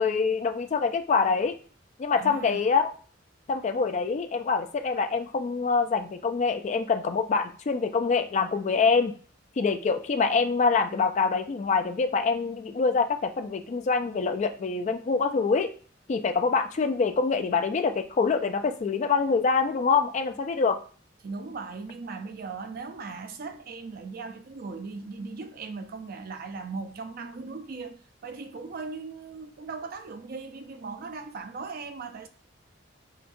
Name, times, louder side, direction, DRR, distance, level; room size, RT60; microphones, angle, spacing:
voice 1, 0.0-1.5 2.0-2.9 3.5-9.1 9.6-15.7 16.1-20.8, left 5 dB, 40° left, 0.3 m, -25 dB
voice 2, 2.2-2.7 21.2-32.3, right 4 dB, 50° right, 0.4 m, -38 dB
5.0 x 2.3 x 2.6 m
head